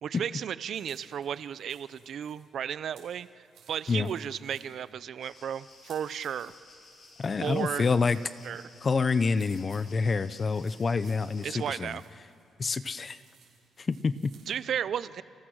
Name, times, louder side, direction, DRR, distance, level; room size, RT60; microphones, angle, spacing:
voice 1, 0.0-6.5 7.4-7.9 8.4-8.7 11.4-12.0 14.5-15.2, right 9 dB, 55° right, 16 dB, 0.6 m, -34 dB
sound 1, 0.7-14.7, right 7 dB, 75° right, 5.9 m, -61 dB
sound 2, 5.2-11.8, left 3 dB, 45° left, 3.9 m, -55 dB
voice 2, 7.2-8.2 8.8-12.0 12.6-13.2 13.8-14.3, left 4 dB, 30° left, 14 dB, 0.6 m, -27 dB
30.0 x 27.5 x 6.3 m, 2.5 s
cardioid pair, 160°, 0 cm